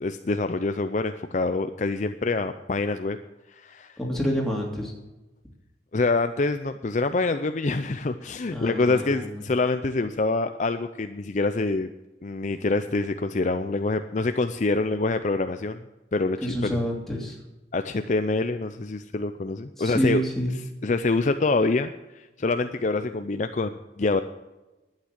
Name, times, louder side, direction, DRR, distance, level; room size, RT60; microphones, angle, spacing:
voice 1, 0.0-3.2 3.5-4.0 5.9-11.9 12.2-15.8 16.1-16.7 17.7-20.2 20.8-24.2, left 3 dB, 40° left, 9 dB, 0.5 m, -26 dB
voice 2, 4.0-4.9 8.5-9.4 16.4-17.4 19.8-20.6, equal, ahead, -2 dB, 3.0 m, -28 dB
11.5 x 9.0 x 7.5 m, 1.1 s
head